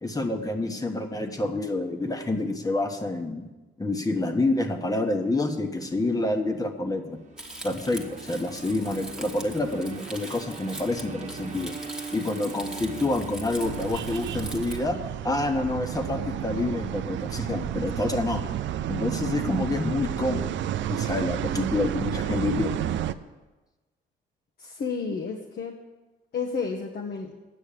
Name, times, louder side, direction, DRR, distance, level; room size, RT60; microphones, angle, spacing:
voice 1, 0.0-3.4 3.8-7.2 7.6-11.7 12.1-15.0 15.2-18.4 18.9-20.5 20.9-22.8, left 2 dB, 20° left, 4 dB, 1.2 m, -28 dB
sound 1, 7.1-15.4, right 4 dB, 35° right, 1.3 m, -41 dB
Crumpling crinkling, 7.4-14.8, right 1 dB, 5° right, 1.4 m, -42 dB
sound 2, 13.6-23.1, right 11 dB, 70° right, 0.5 m, -31 dB
voice 2, 24.6-25.8 26.3-27.3, left 5 dB, 55° left, 2 dB, 1.1 m, -31 dB
8.9 x 6.4 x 8.4 m, 1.2 s
cardioid pair, 90°, 20 cm